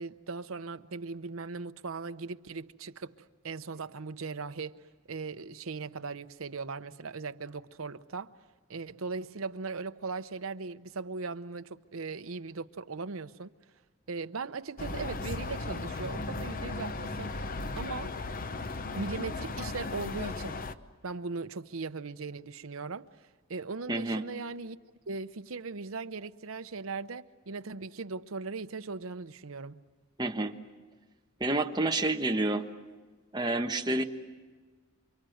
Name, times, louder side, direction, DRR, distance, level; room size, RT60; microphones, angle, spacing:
voice 1, 0.0-8.3 8.7-13.5 14.1-17.3 17.8-18.1 18.9-20.6 21.0-23.1 23.5-24.8 25.1-29.8, right 4 dB, 75° right, 0.8 m, -39 dB
sound 1, 14.8-20.7, left 3 dB, 40° left, 0.8 m, -36 dB
voice 2, 23.9-24.2 30.2-30.5 31.4-32.6 33.3-34.0, right 2 dB, 20° right, 1.3 m, -29 dB
29.0 x 25.0 x 7.9 m
head